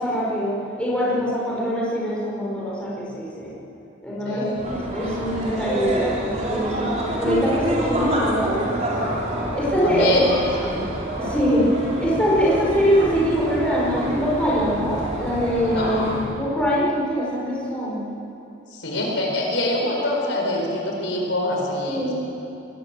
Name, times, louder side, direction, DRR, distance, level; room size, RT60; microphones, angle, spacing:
voice 1, 0.0-3.5 4.0-8.6 9.6-10.3 11.2-11.7 12.0-18.0 21.8-22.1, equal, 5° left, -6 dB, 5.2 m, -23 dB
voice 2, 4.2-4.6 9.8-10.2 10.7-10.9 15.7-16.2 18.7-22.1, left 1 dB, 75° left, -1 dB, 4.9 m, -25 dB
sound 1, 4.6-16.3, right 1 dB, 35° right, 3.8 m, -27 dB
22.0 x 18.5 x 7.8 m, 3.0 s
head